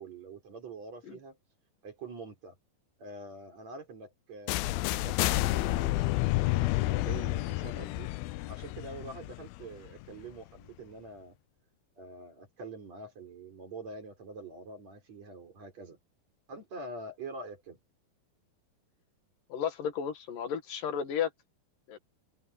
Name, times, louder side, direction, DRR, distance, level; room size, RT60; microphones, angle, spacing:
voice 1, 0.0-1.4 1.8-2.5 3.0-8.1 8.5-11.4 12.0-16.0 16.5-17.8, right 3 dB, 45° right, 5.9 m, -45 dB
sound 1, 4.5-10.3, left 19 dB, 90° left, 2.5 m, -30 dB
voice 2, 19.5-21.3 21.9-22.0, left 8 dB, 70° left, 3.2 m, -33 dB
omnidirectional pair, 4.2 m